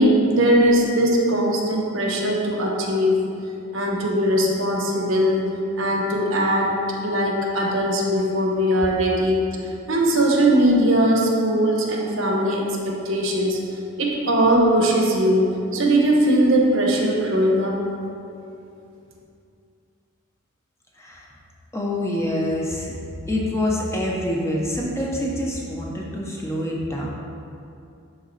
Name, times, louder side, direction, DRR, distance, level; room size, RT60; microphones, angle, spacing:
voice 1, 0.0-3.2 3.7-9.6 9.9-13.6 14.0-17.8, right 1 dB, 60° right, 0 dB, 1.0 m, -20 dB
voice 2, 21.0-21.3 21.7-22.9 23.3-27.1, left 1 dB, 10° left, -3 dB, 0.7 m, -26 dB
11.5 x 3.9 x 4.1 m, 2.6 s
head